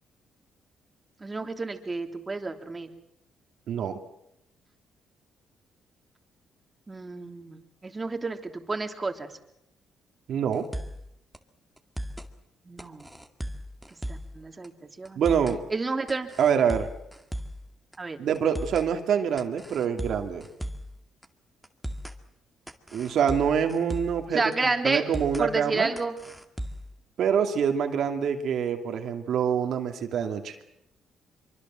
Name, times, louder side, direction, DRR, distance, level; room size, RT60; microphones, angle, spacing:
voice 1, 1.2-2.9 6.9-9.3 12.6-13.1 14.1-14.7 15.0-15.2 15.7-16.3 18.0-18.2 24.3-25.1 25.4-26.1, right 3 dB, 25° right, 6 dB, 3.0 m, -30 dB
voice 2, 3.7-4.0 10.3-10.7 15.2-15.6 16.4-16.9 18.2-20.4 22.9-24.4 24.8-25.9 27.2-30.6, right 7 dB, 70° right, 5 dB, 2.5 m, -25 dB
sound 1, 10.5-11.1 11.3-11.4 11.8-12.3 12.8-14.4 14.6-14.7 15.1-15.6 16.1-17.6 17.9-18.0 18.3-18.9 19.4-20.9 21.2-21.3 21.6-22.2 22.7-24.2 24.5-24.6 24.9-25.5 26.0-26.9, equal, 5° right, 2.1 m, -36 dB
25.0 x 24.0 x 7.6 m, 0.81 s
cardioid pair, 90°, 0 cm